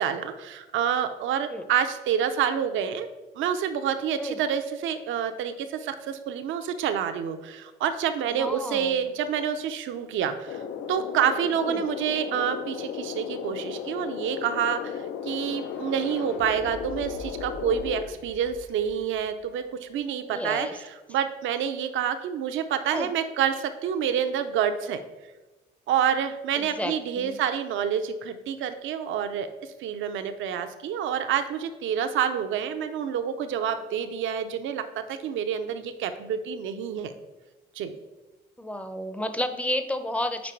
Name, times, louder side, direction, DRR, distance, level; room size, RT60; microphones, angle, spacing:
voice 1, 0.0-3.1 3.4-10.6 10.9-15.0 15.2-20.7 21.1-25.0 25.9-29.5 29.8-37.1 37.8-37.9, right 8 dB, 80° right, 8 dB, 0.5 m, -28 dB
voice 2, 8.3-9.0 11.7-11.8 20.3-20.8 22.9-23.1 26.6-27.4 38.6-40.5, left 1 dB, 5° left, 9 dB, 0.5 m, -31 dB
sound 1, 10.5-18.0, left 7 dB, 80° left, 0.5 m, -35 dB
sound 2, 15.0-19.9, left 2 dB, 60° left, 0.9 m, -45 dB
5.2 x 4.5 x 4.4 m, 1.1 s
cardioid pair, 90°, 20 cm